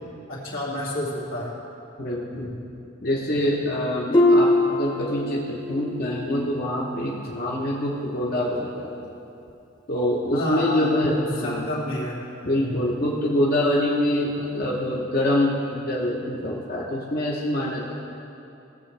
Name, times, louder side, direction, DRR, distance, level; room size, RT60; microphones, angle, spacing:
voice 1, 0.3-1.6 2.3-2.6 10.3-12.2 12.6-12.9, left 1 dB, 85° left, -6 dB, 2.4 m, -30 dB
voice 2, 2.0-2.5 3.0-8.9 9.9-11.7 12.4-17.9, left 1 dB, 45° left, -4 dB, 0.9 m, -25 dB
Harp, 4.1-5.9 6.3-6.7 7.2-7.3, left 1 dB, 20° left, 0.9 m, -21 dB
16.5 x 7.6 x 3.3 m, 2.8 s
head